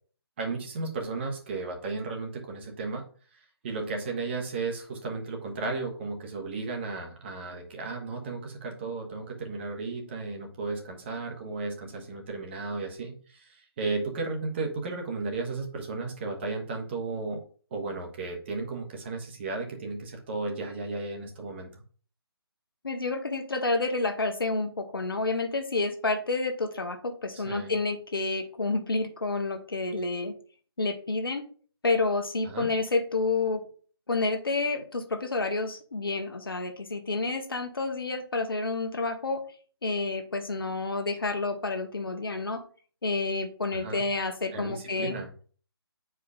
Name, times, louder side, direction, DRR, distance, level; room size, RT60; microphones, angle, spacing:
voice 1, 0.4-3.1 3.3-17.4 17.7-21.7 27.3-27.8 32.4-32.7 43.7-44.1 44.5-45.3, right 3 dB, 25° right, 2 dB, 1.3 m, -34 dB
voice 2, 22.8-30.3 30.8-31.5 31.8-33.6 34.1-39.4 39.8-42.6 43.0-45.1, left 3 dB, 65° left, 5 dB, 1.1 m, -29 dB
9.3 x 4.7 x 2.4 m, 0.43 s
figure-of-eight pair, 145°, 13 cm